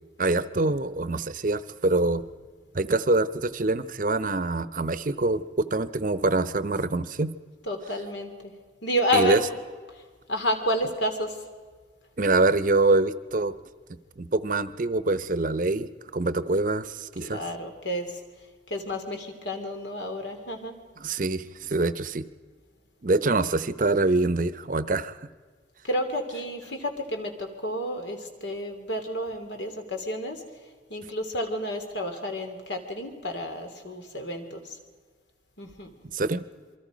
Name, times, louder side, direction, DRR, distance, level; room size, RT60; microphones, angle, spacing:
voice 1, 0.2-2.2 2.7-7.3 9.1-9.4 12.2-13.5 14.2-17.4 21.0-22.2 23.0-25.2 36.1-36.4, right 2 dB, 45° right, 13 dB, 0.8 m, -25 dB
voice 2, 7.6-8.5 8.8-9.4 10.3-11.4 17.2-18.2 18.7-20.8 25.8-30.4 30.9-34.8 35.6-35.9, equal, 75° left, 5 dB, 3.1 m, -30 dB
28.0 x 23.5 x 5.1 m, 1.5 s
head